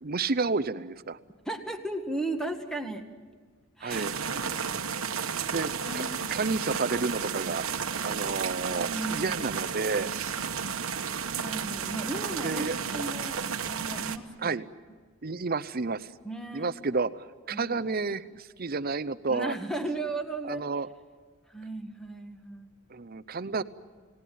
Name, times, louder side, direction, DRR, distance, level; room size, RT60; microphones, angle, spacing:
voice 1, 0.0-1.2 3.8-4.2 5.5-6.0 6.3-7.7 8.0-10.1 12.4-12.7 14.4-14.6 15.2-16.1 16.5-19.5 20.5-20.9 22.9-23.6, right 4 dB, 45° right, 15 dB, 0.7 m, -30 dB
voice 2, 1.5-3.1 3.8-4.1 4.3-4.6 5.8-6.3 8.8-9.4 11.4-12.6 12.9-13.4 13.7-14.6 16.2-16.7 17.5-17.8 19.3-20.7 21.5-22.7, right 2 dB, 5° left, 5 dB, 1.8 m, -36 dB
sound 1, 3.9-14.2, right 6 dB, 75° right, 1.2 m, -32 dB
30.0 x 18.5 x 9.3 m, 1.5 s
head